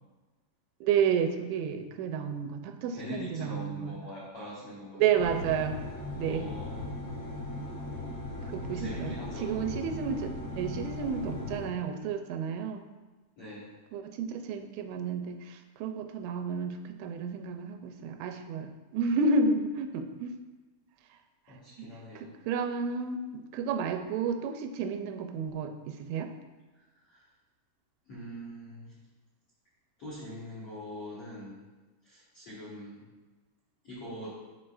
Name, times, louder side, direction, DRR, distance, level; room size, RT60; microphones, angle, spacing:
voice 1, 0.8-4.0 5.0-5.8 6.2-6.5 8.5-9.2 9.4-12.9 13.9-20.4 21.1-21.2 21.5-21.9 22.2-26.3, right 5 dB, 90° right, 7 dB, 2.9 m, -31 dB
voice 2, 2.9-5.0 6.2-7.0 8.7-9.5 13.4-13.7 21.5-22.3 26.7-27.2 28.0-28.9 30.0-31.6 32.0-33.0 33.8-34.4, left 1 dB, 85° left, -7 dB, 1.3 m, -43 dB
sound 1, 5.2-11.7, left 2 dB, 70° left, 3.7 m, -38 dB
12.0 x 4.8 x 2.5 m, 1.2 s
omnidirectional pair, 5.2 m